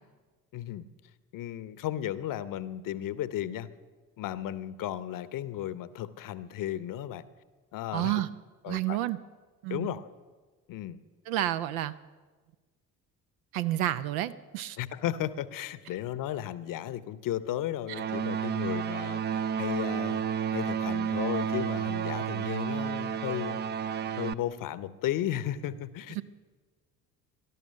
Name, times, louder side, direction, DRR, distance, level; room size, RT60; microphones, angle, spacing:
voice 1, 0.5-0.8 1.3-3.7 4.2-7.2 7.7-8.2 8.6-9.0 9.7-10.1 10.7-11.0 14.8-20.3 20.5-23.6 24.2-26.2, left 12 dB, 45° left, 16 dB, 0.9 m, -34 dB
voice 2, 7.9-8.3 8.7-9.2 9.6-9.9 11.3-11.9 13.5-14.8 18.0-18.1 26.2-26.3, right 14 dB, 65° right, 13 dB, 0.7 m, -30 dB
sound 1, 17.9-24.3, right 8 dB, 25° right, 0.4 m, -31 dB
18.0 x 12.5 x 6.5 m, 1.4 s
figure-of-eight pair, 55°, 47 cm